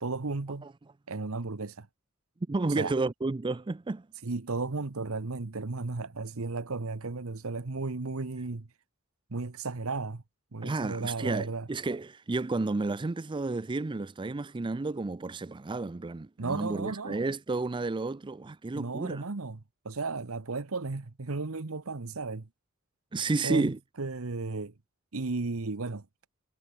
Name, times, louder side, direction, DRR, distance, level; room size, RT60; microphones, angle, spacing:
voice 1, 0.0-0.7 1.1-1.9 2.8-2.9 4.2-8.7 9.3-10.2 10.5-11.7 16.4-17.2 18.7-22.5 23.4-24.7 25.1-26.1, right 3 dB, 65° right, 1.0 m, -34 dB
voice 2, 2.5-4.1 10.6-19.2 23.1-23.8, right 3 dB, 20° right, 0.4 m, -31 dB
head